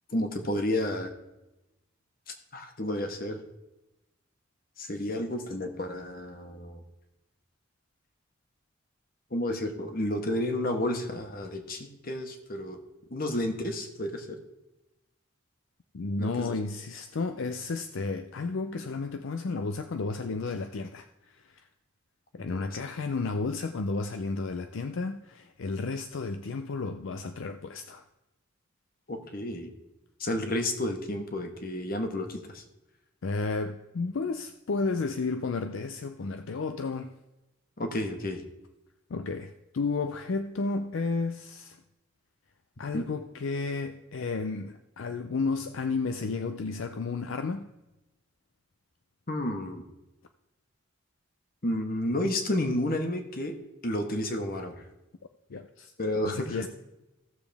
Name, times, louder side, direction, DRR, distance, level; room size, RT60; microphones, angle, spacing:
voice 1, 0.1-1.1 2.5-3.4 4.8-6.8 9.3-12.8 13.1-14.4 16.2-16.5 22.4-22.7 29.1-29.7 30.2-32.6 37.8-38.4 42.9-43.1 49.3-49.9 51.6-54.7 56.0-56.7, left 1 dB, 45° left, 5 dB, 1.2 m, -31 dB
voice 2, 15.9-21.7 22.3-28.0 33.2-37.1 39.1-41.8 42.8-47.7 55.5-55.9 56.3-56.7, left 4 dB, 70° left, 8 dB, 0.5 m, -32 dB
15.5 x 7.0 x 3.4 m, 0.98 s
head